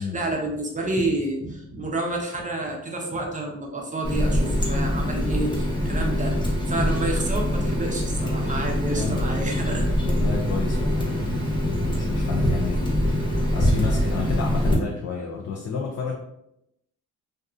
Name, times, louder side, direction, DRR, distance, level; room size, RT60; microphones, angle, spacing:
voice 1, 0.0-9.9, right 2 dB, 25° right, 1 dB, 0.6 m, -29 dB
Water tap faucet, 4.0-14.7, equal, 15° left, 0.7 m, -24 dB
voice 2, 8.9-9.5 10.0-13.2 13.5-16.2, left 5 dB, 55° left, 1 dB, 0.5 m, -31 dB
2.6 x 2.3 x 2.3 m, 0.80 s
cardioid pair, 90°, 30 cm